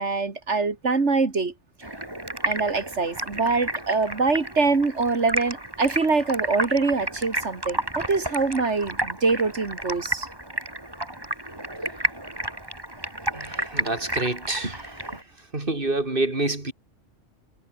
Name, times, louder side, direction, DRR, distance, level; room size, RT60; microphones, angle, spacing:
voice 1, 0.0-1.5 2.4-10.3, right 4 dB, 75° right, 2.7 m, -24 dB
Stream, 1.8-15.2, right 1 dB, 20° right, 3.2 m, -31 dB
voice 2, 13.3-14.9 15.5-16.7, right 2 dB, 50° right, 4.1 m, -27 dB
omnidirectional pair, 1.2 m